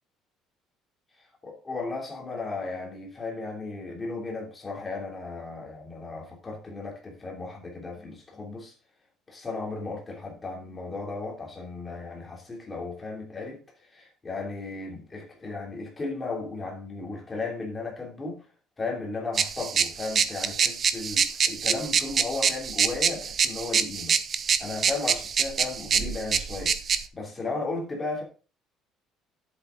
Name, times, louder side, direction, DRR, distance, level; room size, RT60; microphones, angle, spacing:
voice 1, 1.4-8.7 9.3-13.6 13.9-18.4 18.8-24.2 24.6-26.8 27.1-28.2, left 3 dB, 15° left, 2.9 m, -35 dB
sound 1, 19.3-27.1, right 6 dB, 30° right, 0.6 m, -26 dB
10.5 x 7.9 x 3.8 m
cardioid pair, 170°, 0 cm